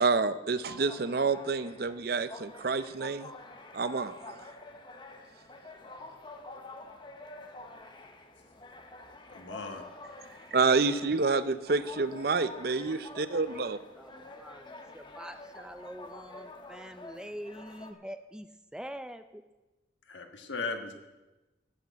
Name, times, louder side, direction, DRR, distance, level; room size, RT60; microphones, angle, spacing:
voice 1, 0.0-3.3 3.7-4.5 10.5-13.8, right 4 dB, 55° right, 13 dB, 0.6 m, -28 dB
sound 1, 0.6-17.9, left 2 dB, 25° left, 0.9 m, -48 dB
voice 2, 9.3-9.8 20.1-20.9, left 4 dB, 80° left, 4 dB, 1.5 m, -37 dB
voice 3, 14.0-19.4, equal, 5° right, 9 dB, 0.4 m, -44 dB
13.0 x 6.5 x 8.3 m, 1.1 s
head